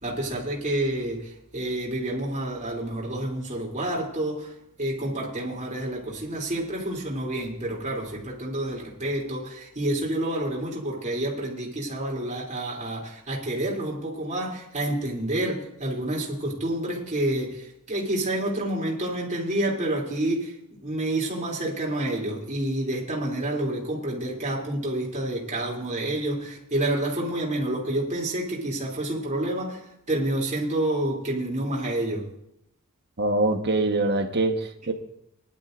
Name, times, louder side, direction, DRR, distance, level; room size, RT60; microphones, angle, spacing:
voice 1, 0.0-4.5 4.8-20.5 20.8-32.3, right 1 dB, 35° right, -3 dB, 3.1 m, -29 dB
voice 2, 33.2-34.9, right 2 dB, 50° right, 5 dB, 1.2 m, -24 dB
20.0 x 11.5 x 2.6 m, 0.77 s
head